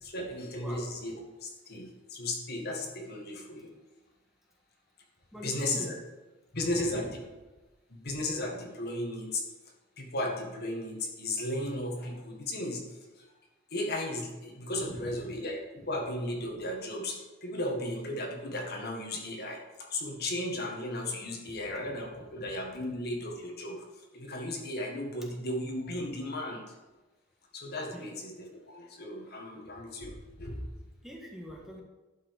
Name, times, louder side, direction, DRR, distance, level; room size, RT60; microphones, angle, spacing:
voice 1, 0.0-1.1 1.4-3.7 5.4-5.9 6.5-7.0 7.9-9.4 10.0-12.8 13.2-13.3 13.7-26.6 27.5-30.6, left 1 dB, 55° left, 1 dB, 1.8 m, -35 dB
voice 2, 0.5-0.9 5.3-5.9 6.7-7.1 15.0-15.1 27.9-28.1 31.0-31.8, equal, ahead, -2 dB, 1.5 m, -43 dB
11.5 x 6.0 x 4.9 m, 1.1 s
head